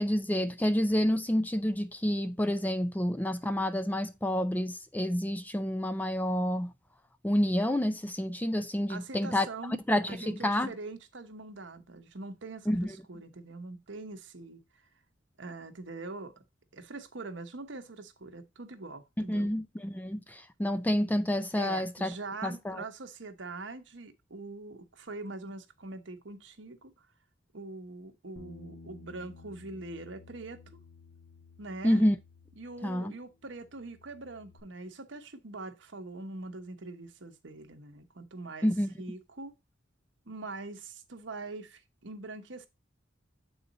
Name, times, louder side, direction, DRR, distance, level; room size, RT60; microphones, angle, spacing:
voice 1, 0.0-6.7 7.2-9.5 9.9-10.7 12.7-12.9 19.3-22.1 22.4-22.8 31.8-32.2 32.8-33.1 38.6-38.9, left 1 dB, 10° left, 0.4 m, -29 dB
voice 2, 8.9-9.8 10.1-14.6 15.4-16.3 16.7-19.5 21.6-26.9 27.5-30.8 31.6-32.0 32.6-38.7 39.0-39.6 40.3-42.7, right 3 dB, 65° right, 1.0 m, -43 dB
Bass guitar, 28.4-33.1 33.4-34.6, left 3 dB, 90° left, 1.7 m, -54 dB
8.1 x 4.0 x 4.0 m
head